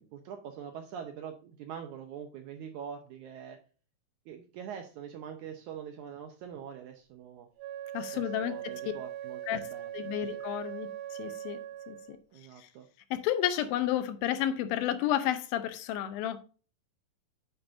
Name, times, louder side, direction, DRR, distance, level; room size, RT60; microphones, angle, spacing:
voice 1, 0.0-3.6 4.2-7.5 8.1-10.4 12.3-12.9, right 8 dB, 80° right, 1.8 m, -44 dB
Wind instrument woodwind instrument, 7.6-12.2, right 11 dB, 60° right, 2.0 m, -40 dB
voice 2, 7.9-8.5 9.5-9.6 9.9-11.6 11.9-12.2 13.1-16.4, left 11 dB, 85° left, 2.5 m, -31 dB
8.8 x 7.0 x 2.6 m
omnidirectional pair, 4.2 m